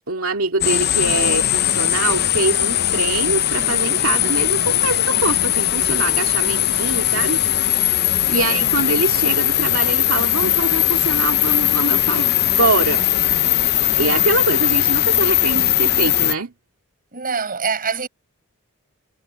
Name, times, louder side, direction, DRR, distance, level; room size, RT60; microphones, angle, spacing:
voice 1, 0.1-7.4 7.8-8.0 8.3-13.1 14.0-16.5, right 3 dB, 70° right, 2.4 m, -24 dB
sound 1, 0.6-16.3, left 12 dB, 50° left, 0.7 m, -19 dB
voice 2, 8.3-8.7 17.1-18.1, right 5 dB, 40° right, 6.4 m, -25 dB
head